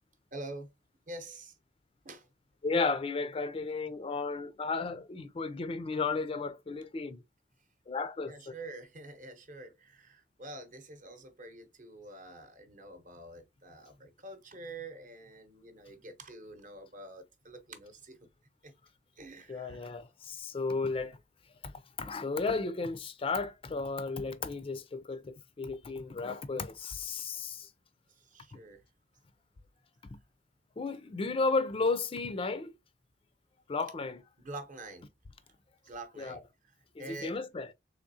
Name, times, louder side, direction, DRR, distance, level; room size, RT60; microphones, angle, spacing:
voice 1, 0.3-0.7 1.1-1.5 2.0-2.3 8.2-18.3 18.6-18.7 19.2-19.9 28.1-28.8 34.4-35.1 35.8-37.4, right 2 dB, 45° right, 0.8 m, -47 dB
voice 2, 2.6-7.2 7.9-8.5 19.5-21.2 21.6-21.7 22.0-27.7 30.8-32.7 33.7-34.2 36.2-36.4 37.0-37.7, left 4 dB, 30° left, 0.4 m, -33 dB
3.6 x 3.4 x 2.6 m
head